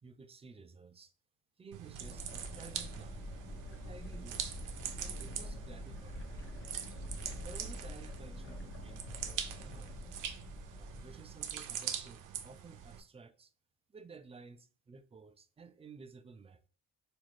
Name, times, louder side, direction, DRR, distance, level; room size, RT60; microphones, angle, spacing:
voice 1, 0.0-1.1 1.6-3.2 3.7-4.5 5.0-6.2 7.4-10.2 10.8-13.5 13.9-16.7, right 4 dB, 20° right, 0.3 m, -54 dB
sound 1, 1.7-13.0, right 9 dB, 85° right, 0.5 m, -43 dB
sound 2, 2.0-11.6, left 1 dB, 40° left, 0.7 m, -46 dB
3.6 x 2.5 x 3.1 m
cardioid pair, 90°, 30 cm